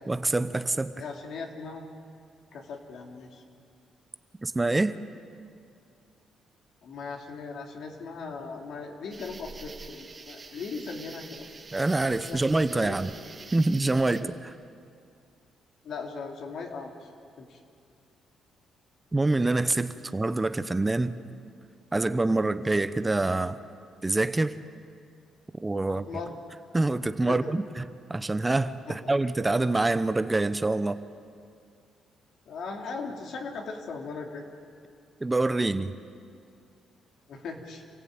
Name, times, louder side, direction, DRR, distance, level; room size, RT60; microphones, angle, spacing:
voice 1, 0.1-0.9 4.4-5.0 11.7-13.1 13.5-14.5 19.1-21.1 21.9-23.6 24.0-24.6 25.6-26.1 26.7-31.0 35.2-36.0, right 2 dB, 20° right, 12 dB, 0.9 m, -26 dB
voice 2, 1.0-1.8 2.5-3.4 6.8-11.5 12.3-13.0 15.8-17.1 17.4-17.6 25.9-26.4 27.3-27.5 28.9-29.1 32.5-34.5 37.3-37.8, left 4 dB, 70° left, 1 dB, 3.1 m, -38 dB
sound 1, 9.1-14.2, right 4 dB, 35° right, 2.1 m, -46 dB
28.0 x 16.0 x 8.8 m, 2.4 s
cardioid pair, 90°, 0 cm